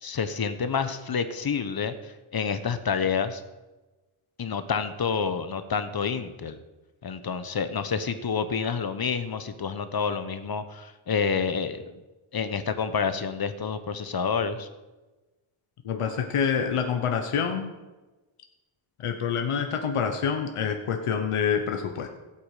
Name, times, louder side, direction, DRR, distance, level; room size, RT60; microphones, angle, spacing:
voice 1, 0.0-3.4 4.4-6.6 7.0-11.9 12.3-14.7, left 6 dB, 45° left, 11 dB, 1.1 m, -28 dB
voice 2, 15.8-17.7 19.0-22.1, left 7 dB, 85° left, 5 dB, 1.1 m, -27 dB
16.0 x 8.6 x 5.0 m, 1.1 s
wide cardioid pair, 105°, 50 cm